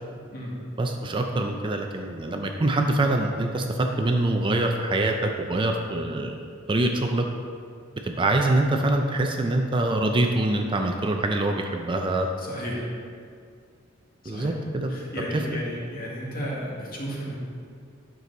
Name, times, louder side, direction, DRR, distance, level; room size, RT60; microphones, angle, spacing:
voice 1, 0.8-6.4 6.7-7.2 8.0-12.3 14.3-15.0 15.3-15.4, right 2 dB, 25° right, 3 dB, 0.5 m, -24 dB
voice 2, 12.4-12.9 14.2-14.5 14.9-17.3, equal, 45° left, -4 dB, 1.8 m, -33 dB
9.8 x 6.2 x 4.0 m, 2.3 s
head